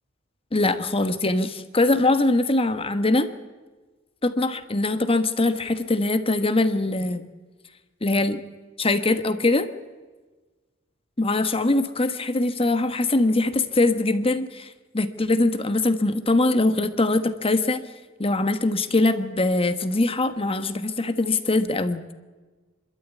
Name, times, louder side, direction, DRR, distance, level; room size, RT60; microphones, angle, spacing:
voice 1, 0.5-3.3 4.2-7.3 8.0-8.4 8.8-9.7 11.2-17.8 18.2-22.0, left 2 dB, 30° left, 10 dB, 1.2 m, -22 dB
26.0 x 13.0 x 8.3 m, 1.3 s
head